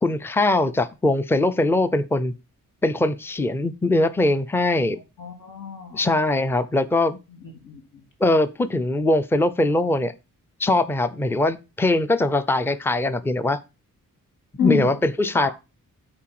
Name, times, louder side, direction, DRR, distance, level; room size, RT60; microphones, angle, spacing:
voice 1, 0.0-2.3 2.8-5.0 5.9-7.2 8.2-10.1 10.6-13.6 14.6-15.5, left 2 dB, 5° left, 0.5 m, -21 dB
voice 2, 5.2-6.0 7.4-8.0 14.6-15.0 15.3-15.5, left 7 dB, 80° left, 3.0 m, -28 dB
8.6 x 4.5 x 5.9 m
wide cardioid pair, 170°, 33 cm